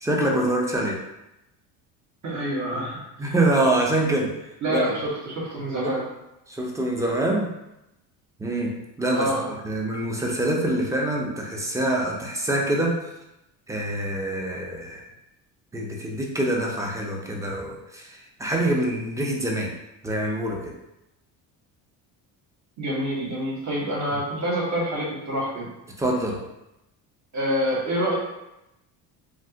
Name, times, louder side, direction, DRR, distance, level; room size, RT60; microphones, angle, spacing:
voice 1, 0.0-1.0 3.2-4.3 4.7-4.8 5.8-5.9 6.5-7.5 8.4-9.3 9.6-13.0 13.7-15.0 15.7-19.7 20.0-20.7 26.0-26.4, right 1 dB, 10° right, -1 dB, 0.5 m, -25 dB
voice 2, 2.2-3.3 4.6-6.1 9.1-9.5 22.8-25.7 27.3-28.1, equal, 45° right, -5 dB, 1.4 m, -27 dB
3.2 x 2.4 x 2.8 m, 0.90 s
cardioid pair, 100°, 39 cm